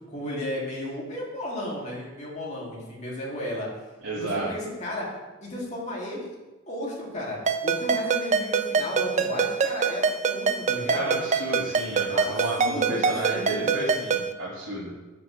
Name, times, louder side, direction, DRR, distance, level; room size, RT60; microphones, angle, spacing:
voice 1, 0.1-3.8 4.2-5.1 5.4-6.4 6.7-11.1 12.1-14.0, left 1 dB, 35° left, -4 dB, 2.4 m, -34 dB
voice 2, 4.0-4.5 10.7-14.9, right 2 dB, 70° right, -8 dB, 2.2 m, -32 dB
Ringtone, 7.5-14.3, right 5 dB, 35° right, 0.4 m, -25 dB
12.5 x 6.0 x 3.2 m, 1.1 s
head